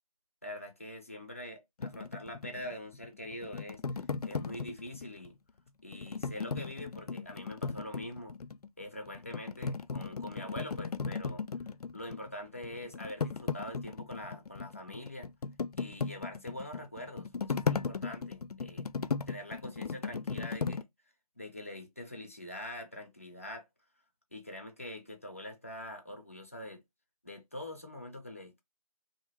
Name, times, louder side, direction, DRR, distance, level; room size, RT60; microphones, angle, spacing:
voice 1, 0.4-3.8 4.2-5.3 5.8-8.3 8.8-11.4 11.9-15.3 15.8-18.9 19.3-20.9 21.4-23.6 24.3-26.8 27.2-28.6, left 1 dB, 25° left, 0.5 m, -44 dB
sound 1, 1.8-5.3 5.9-8.7 9.1-12.3 12.6-20.8, left 5 dB, 90° left, 0.4 m, -36 dB
2.9 x 2.8 x 2.8 m
figure-of-eight pair, 170°, 19 cm